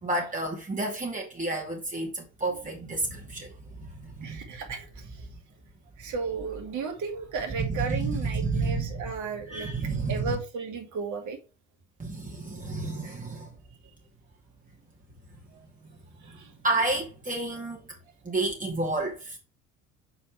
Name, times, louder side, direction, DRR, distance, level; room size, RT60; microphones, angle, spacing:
voice 1, 0.0-3.5 3.8-4.4 7.6-9.0 9.5-10.3 12.0-13.5 16.6-17.8 18.2-19.4, right 2 dB, 20° right, 2.2 m, -30 dB
voice 2, 4.2-5.3 6.0-9.7 10.1-11.4 16.2-16.5, right 4 dB, 45° right, 1.9 m, -34 dB
7.0 x 4.2 x 4.4 m
figure-of-eight pair, 60°, 40 cm